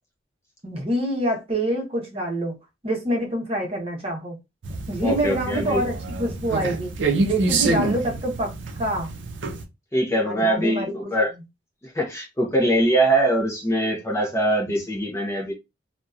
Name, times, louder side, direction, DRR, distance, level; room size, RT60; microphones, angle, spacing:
voice 1, 0.6-2.6 2.8-4.4 4.9-6.9 7.2-8.5 8.8-9.1 10.2-11.1, right 1 dB, 30° right, 0.8 m, -26 dB
sound 1, 4.6-9.6, right 3 dB, 75° right, 0.5 m, -27 dB
voice 2, 5.0-5.8 9.9-11.3 11.8-15.5, right 1 dB, 15° left, 0.5 m, -22 dB
2.6 x 2.1 x 2.3 m
head